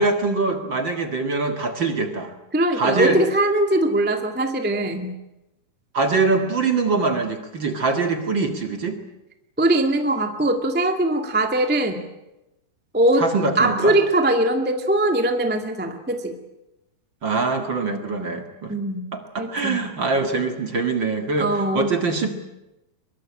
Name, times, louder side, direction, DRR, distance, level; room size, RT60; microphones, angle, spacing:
voice 1, 0.0-2.3 2.8-3.2 5.9-9.0 13.2-13.9 17.2-18.7 19.1-22.3, right 3 dB, 40° right, 6 dB, 1.9 m, -23 dB
voice 2, 2.5-5.1 9.6-12.0 12.9-13.2 13.6-16.3 18.7-19.0 19.4-19.8 21.4-22.0, right 1 dB, 5° right, 5 dB, 0.7 m, -21 dB
23.5 x 22.5 x 8.7 m, 0.93 s
omnidirectional pair, 4.4 m